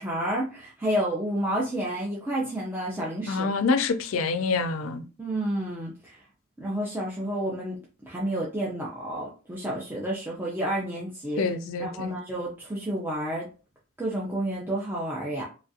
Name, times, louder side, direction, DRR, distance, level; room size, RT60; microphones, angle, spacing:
voice 1, 0.0-3.5 5.2-6.2 6.6-7.8 8.1-11.4 11.8-13.5 14.0-15.4, right 1 dB, 10° right, 0.5 m, -30 dB
voice 2, 3.3-5.0 11.4-12.1, left 4 dB, 80° left, 0.4 m, -26 dB
3.1 x 2.4 x 2.6 m
head